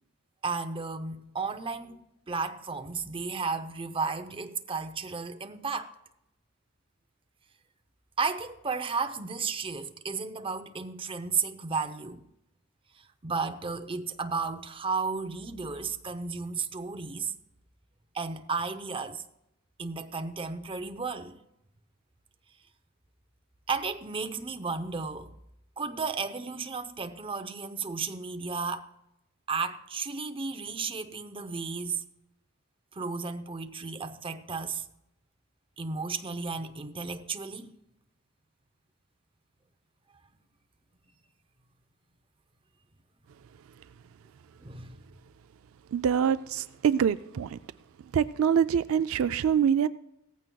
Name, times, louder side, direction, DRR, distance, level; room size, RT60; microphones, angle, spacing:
voice 1, 0.4-2.0 2.3-5.9 8.2-12.2 13.2-17.3 18.1-19.2 19.8-21.4 23.7-25.3 25.8-28.9 29.5-32.0 32.9-34.8 35.8-37.7 44.6-45.0, right 4 dB, 25° right, 0.7 m, -33 dB
voice 2, 45.9-47.6 48.1-49.9, right 8 dB, 70° right, 0.3 m, -25 dB
17.0 x 14.5 x 2.3 m
head